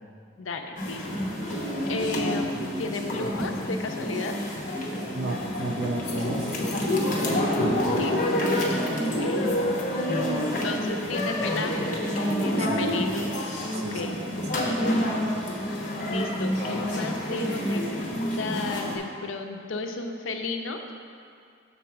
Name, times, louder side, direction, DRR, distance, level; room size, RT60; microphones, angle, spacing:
voice 1, 0.4-1.0 1.9-4.4 7.8-8.2 8.6-8.8 9.2-12.0 12.4-13.3 13.7-14.2 16.1-20.8, left 3 dB, 80° left, 4 dB, 0.6 m, -34 dB
sound 1, 0.8-19.0, equal, 40° left, 0.9 m, -28 dB
voice 2, 5.1-6.5 12.6-13.0 13.7-14.9, right 1 dB, 55° right, 1 dB, 0.7 m, -33 dB
6.2 x 4.1 x 5.7 m, 2.3 s
head